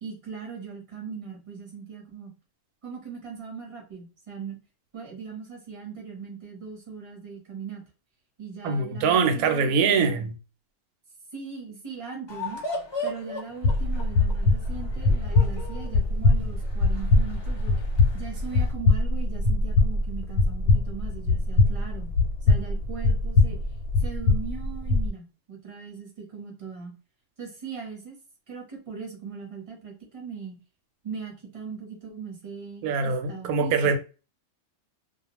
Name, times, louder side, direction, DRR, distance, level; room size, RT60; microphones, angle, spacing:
voice 1, 0.0-2.3 2.8-4.6 4.9-7.8 8.4-10.3 11.3-12.6 13.0-17.7 18.1-22.1 22.4-23.6 24.0-26.9 27.4-28.2 28.5-30.6 31.0-33.7, right 6 dB, 30° right, 0.8 m, -39 dB
voice 2, 8.6-10.3 32.8-34.0, right 5 dB, 80° right, 1.0 m, -23 dB
sound 1, 12.3-18.7, left 2 dB, 40° left, 0.4 m, -38 dB
sound 2, 13.6-25.1, left 2 dB, 90° left, 1.1 m, -23 dB
2.4 x 2.2 x 2.9 m
omnidirectional pair, 1.6 m